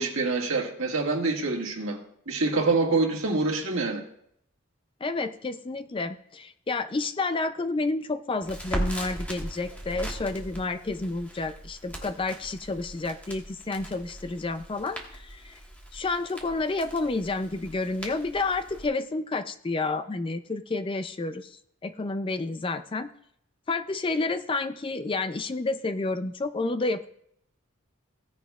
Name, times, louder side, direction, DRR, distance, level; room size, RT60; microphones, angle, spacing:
voice 1, 0.0-2.0 2.3-4.0, right 3 dB, 65° right, 0 dB, 1.8 m, -26 dB
voice 2, 5.0-15.6 15.9-23.1 23.7-27.1, left 3 dB, 25° left, 10 dB, 0.4 m, -30 dB
Crackle, 8.4-18.8, right 1 dB, 5° left, 1.5 m, -39 dB
17.0 x 9.8 x 2.4 m, 0.70 s
head